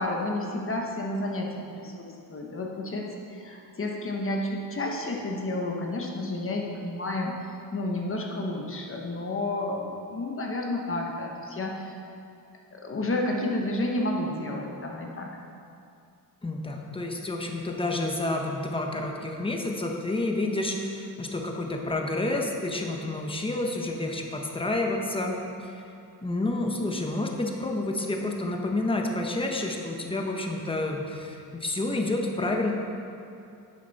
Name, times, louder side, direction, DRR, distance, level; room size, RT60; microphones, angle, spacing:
voice 1, 0.0-7.4 7.7-12.0 12.7-15.3, left 1 dB, 35° left, 0 dB, 1.1 m, -31 dB
voice 2, 16.4-25.4 25.6-25.7 26.2-32.7, left 2 dB, 15° left, 1 dB, 1.0 m, -29 dB
10.0 x 9.1 x 4.1 m, 2.6 s
wide cardioid pair, 160°, 37 cm